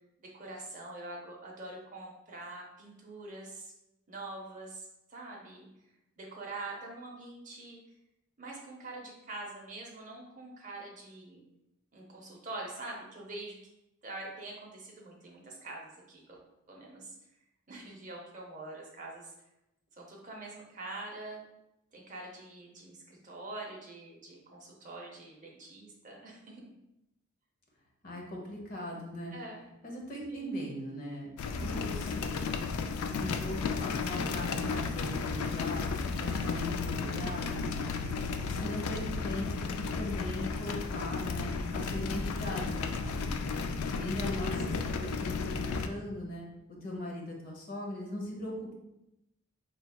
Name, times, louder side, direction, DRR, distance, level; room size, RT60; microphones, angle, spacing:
voice 1, 0.3-3.7 4.1-5.7 6.2-7.8 8.4-11.4 11.9-13.6 14.0-16.4 16.7-17.1 17.7-19.3 20.0-21.4 21.9-26.7 29.3-29.6 30.3-30.6 31.5-32.0 38.2-38.8 44.4-44.5, right 2 dB, 35° right, -1 dB, 0.7 m, -45 dB
voice 2, 28.0-29.3 29.8-31.3 31.6-32.4 33.0-35.9 36.2-37.8 38.4-43.5 44.0-46.4 46.8-48.7, left 1 dB, 40° left, -1 dB, 0.8 m, -39 dB
sound 1, 31.4-45.9, left 4 dB, 80° left, 0.3 m, -33 dB
4.0 x 3.4 x 2.3 m, 0.88 s
head